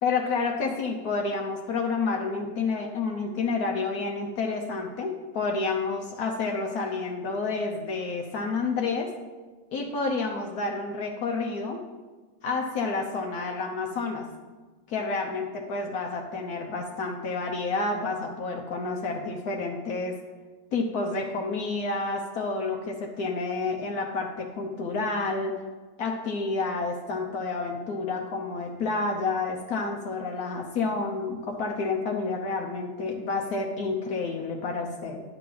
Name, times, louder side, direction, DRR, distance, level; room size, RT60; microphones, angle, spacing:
voice 1, 0.0-9.1 9.7-11.8 12.4-14.3 14.9-20.2 20.7-25.6 26.0-35.2, left 3 dB, 75° left, 1 dB, 1.3 m, -29 dB
11.0 x 3.9 x 7.5 m, 1.3 s
omnidirectional pair, 1.7 m